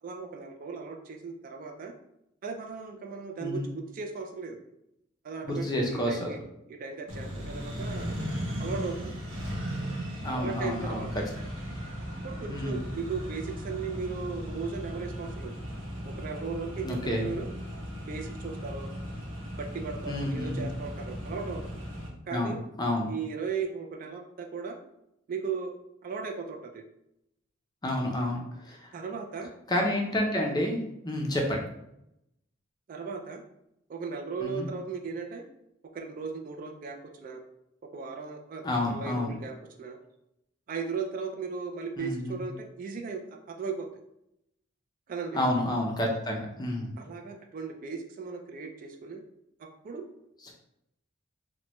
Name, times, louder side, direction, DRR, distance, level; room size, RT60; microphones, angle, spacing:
voice 1, 0.0-1.9 2.4-4.6 5.2-6.4 6.7-8.1 8.6-9.1 10.3-11.3 12.2-15.6 16.0-17.5 18.1-18.9 19.6-21.6 22.3-22.6 23.1-24.8 25.3-25.7 26.0-26.8 28.9-29.5 32.9-33.4 33.9-35.4 35.9-37.4 37.9-40.0 40.7-43.9 45.1-45.4 47.0-49.2 49.6-50.1, right 5 dB, 45° right, 3 dB, 0.3 m, -37 dB
voice 2, 5.4-6.3 10.2-11.0 12.5-12.8 16.8-17.2 20.1-20.6 22.3-22.5 22.8-23.1 27.8-28.9 29.7-31.6 34.4-34.7 38.6-39.3 42.0-42.4 45.3-46.9, left 1 dB, 20° left, 0 dB, 0.5 m, -29 dB
Accelerating revving vroom, 7.1-22.1, equal, 80° right, 0.8 m, -37 dB
2.9 x 2.1 x 3.0 m, 0.81 s
head